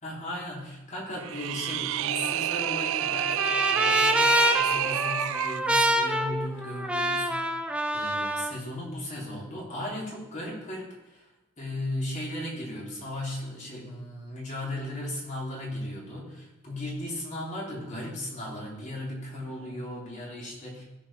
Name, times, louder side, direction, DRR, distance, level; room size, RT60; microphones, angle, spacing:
voice 1, 0.0-7.6 7.9-11.3 11.6-20.8, left 1 dB, 35° left, -4 dB, 3.5 m, -36 dB
sound 1, 1.2-5.6, right 13 dB, 65° right, 0.3 m, -29 dB
Trumpet, 2.2-8.5, equal, 5° right, 0.6 m, -26 dB
15.0 x 5.5 x 5.6 m, 1.0 s
head